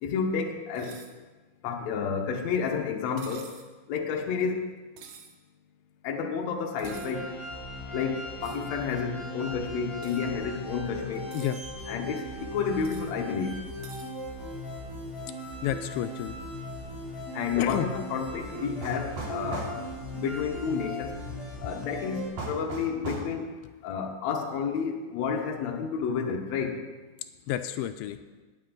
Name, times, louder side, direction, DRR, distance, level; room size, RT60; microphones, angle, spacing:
voice 1, 0.0-1.0 1.6-3.5 3.9-4.7 6.0-7.3 7.9-11.3 11.9-13.6 17.3-19.7 20.1-21.2 21.6-23.5 23.8-26.8, left 6 dB, 60° left, 2 dB, 2.0 m, -30 dB
sound 1, 0.7-1.1 3.2-3.7 5.0-5.3 6.8-7.1 8.4-8.7 10.0-10.2 11.1-11.6 12.8-13.1 13.8-14.1, right 7 dB, 75° right, 1.6 m, -49 dB
sound 2, 6.8-22.3, equal, 10° left, 3.1 m, -38 dB
voice 2, 15.6-16.4 17.6-17.9 21.2-21.4 27.5-28.2, left 11 dB, 85° left, 9 dB, 2.4 m, -31 dB
sound 3, 18.8-19.8 22.4-23.3, right 2 dB, 50° right, 4.3 m, -35 dB
19.0 x 8.0 x 3.9 m, 1.3 s
omnidirectional pair, 4.3 m